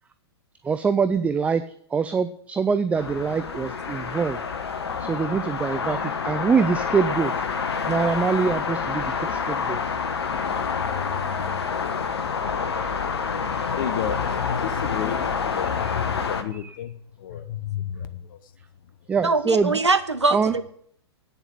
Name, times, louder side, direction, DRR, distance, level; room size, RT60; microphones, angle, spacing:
voice 1, 0.6-1.6 1.9-4.4 5.0-7.3 7.9-9.8 16.5-16.8 19.1-19.8 20.3-20.5, right 5 dB, 10° right, 12 dB, 0.4 m, -24 dB
sound 1, 3.0-16.4, left 6 dB, 70° left, 1.3 m, -27 dB
voice 2, 13.6-14.2 14.5-18.4, left 9 dB, 50° left, 13 dB, 0.8 m, -32 dB
voice 3, 19.2-20.7, right 3 dB, 90° right, 11 dB, 0.7 m, -23 dB
9.0 x 7.4 x 8.6 m, 0.64 s
figure-of-eight pair, 110°, 14 cm